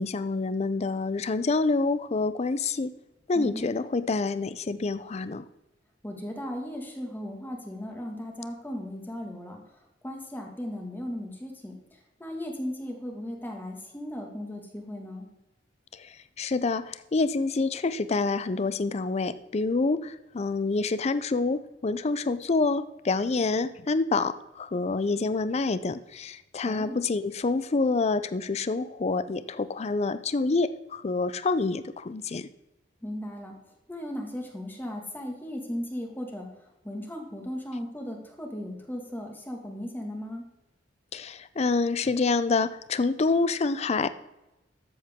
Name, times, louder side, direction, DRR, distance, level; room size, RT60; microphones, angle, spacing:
voice 1, 0.0-2.9 3.3-5.5 15.9-32.5 41.1-44.1, left 3 dB, 35° left, 13 dB, 0.5 m, -27 dB
voice 2, 3.3-3.7 6.0-9.6 10.0-15.3 26.7-27.0 33.0-33.6 33.9-36.5 36.8-40.5, left 1 dB, 10° left, 1 dB, 1.8 m, -36 dB
13.5 x 7.6 x 3.6 m, 0.95 s
head